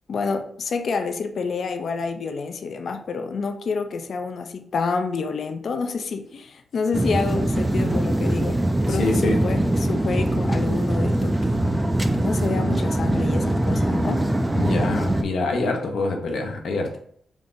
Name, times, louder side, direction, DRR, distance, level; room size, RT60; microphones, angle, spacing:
voice 1, 0.1-8.6 8.9-11.6 12.2-14.2, left 5 dB, 70° left, 0.4 m, -28 dB
sound 1, 6.9-15.2, right 1 dB, 15° right, 0.3 m, -22 dB
voice 2, 8.9-9.4 14.6-17.0, left 2 dB, 90° left, 0.8 m, -25 dB
3.6 x 2.5 x 3.7 m
wide cardioid pair, 105°, 0 cm